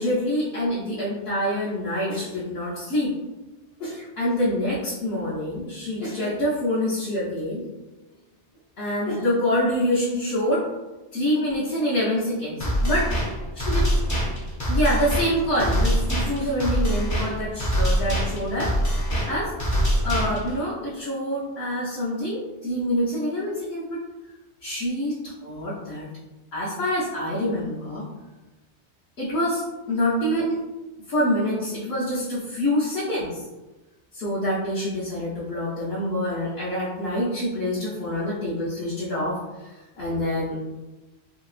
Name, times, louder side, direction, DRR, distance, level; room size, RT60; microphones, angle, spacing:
voice 1, 0.0-3.1 3.8-7.6 8.8-10.6 11.1-13.1 13.7-13.8 14.7-18.7 19.3-19.5 20.0-24.0 24.6-26.1 26.5-28.1 29.2-30.6 31.1-33.4 34.1-40.6, equal, 65° left, -9 dB, 1.0 m, -26 dB
sound 1, 12.6-20.6, equal, 25° left, 0.4 m, -24 dB
3.1 x 2.9 x 2.4 m, 1.1 s
omnidirectional pair, 1.2 m